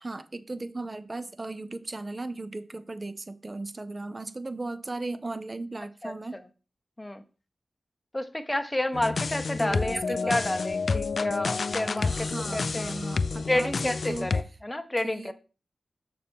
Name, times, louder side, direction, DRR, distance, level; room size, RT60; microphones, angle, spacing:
voice 1, 0.0-6.4 9.6-10.5 12.0-14.3 15.0-15.3, right 2 dB, 35° right, 0.5 m, -37 dB
voice 2, 6.0-6.4 7.0-7.2 8.1-12.9 13.5-15.3, left 1 dB, 20° left, 0.7 m, -30 dB
sound 1, 8.9-14.4, left 4 dB, 65° left, 0.3 m, -29 dB
6.8 x 6.6 x 3.5 m
wide cardioid pair, 75°, 0 cm